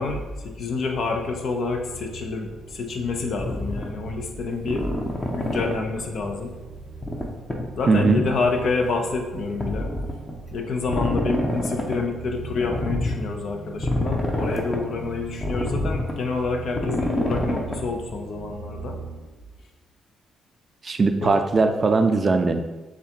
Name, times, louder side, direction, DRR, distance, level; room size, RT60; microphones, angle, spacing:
voice 1, 0.0-4.9 5.3-6.5 7.8-9.9 10.5-19.0 21.2-21.4, left 4 dB, 60° left, 3 dB, 0.6 m, -28 dB
sound 1, 0.7-19.2, right 3 dB, 80° right, 0.6 m, -41 dB
sound 2, 3.4-3.9 4.7-6.0 7.0-7.2 7.5-7.6 8.0-8.4 9.6-10.3 10.9-12.0 12.6-13.2 13.8-14.9 15.4-16.2 16.7-17.8, left 1 dB, 20° left, 0.7 m, -27 dB
voice 2, 7.9-8.2 20.8-22.6, right 3 dB, 35° right, 8 dB, 0.3 m, -19 dB
6.9 x 2.4 x 2.9 m, 1.2 s
cardioid pair, 90°, 0 cm